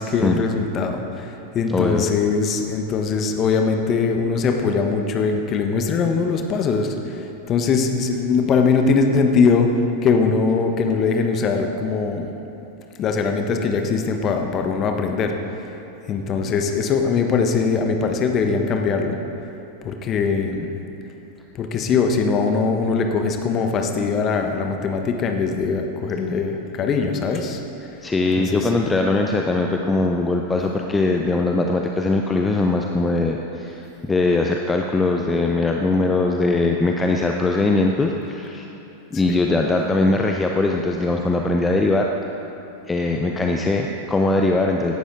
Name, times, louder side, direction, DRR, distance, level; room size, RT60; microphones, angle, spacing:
voice 1, 0.0-9.7 10.0-12.3 13.0-15.3 16.1-19.2 19.8-20.7 21.5-27.6 28.4-28.7, left 5 dB, 30° left, 4 dB, 1.3 m, -21 dB
voice 2, 1.7-2.0 28.0-33.8 34.1-38.7 39.1-42.1 42.9-44.9, left 2 dB, 10° left, 2 dB, 0.7 m, -21 dB
16.5 x 11.5 x 3.9 m, 2.9 s
figure-of-eight pair, 90°, 0 cm